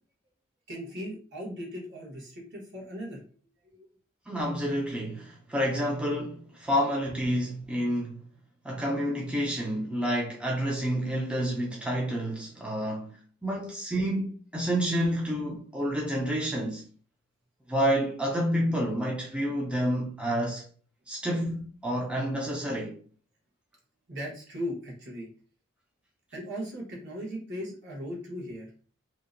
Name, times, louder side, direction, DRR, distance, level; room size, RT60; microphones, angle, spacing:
voice 1, 0.7-3.2 3.7-3.9 24.1-25.3 26.3-28.7, equal, 60° right, 1.1 m, -38 dB
voice 2, 4.3-8.2 8.6-16.8 17.7-20.6 21.1-23.0, equal, 5° right, 0.3 m, -29 dB
2.6 x 2.1 x 2.5 m
head